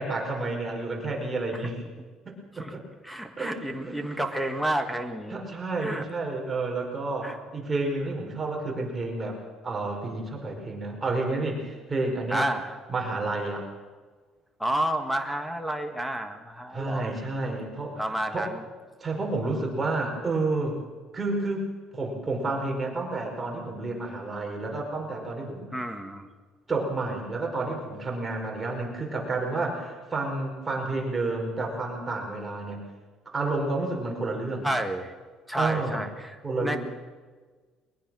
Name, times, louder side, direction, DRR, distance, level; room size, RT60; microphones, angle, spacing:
voice 1, 0.0-1.8 2.5-2.8 3.4-3.9 5.3-9.4 9.6-12.5 12.9-13.7 16.7-18.5 19.0-20.8 21.1-21.7 21.9-25.7 26.7-32.8 33.2-34.7 35.6-36.0 36.4-36.8, right 2 dB, 20° right, 1 dB, 4.8 m, -30 dB
voice 2, 3.0-5.4 5.8-6.0 7.2-7.4 12.3-12.8 14.6-17.1 18.0-18.6 25.7-26.3 34.6-35.1 35.5-36.8, right 1 dB, ahead, 7 dB, 1.7 m, -30 dB
21.5 x 21.5 x 6.3 m, 1.4 s
cardioid pair, 125°, 0 cm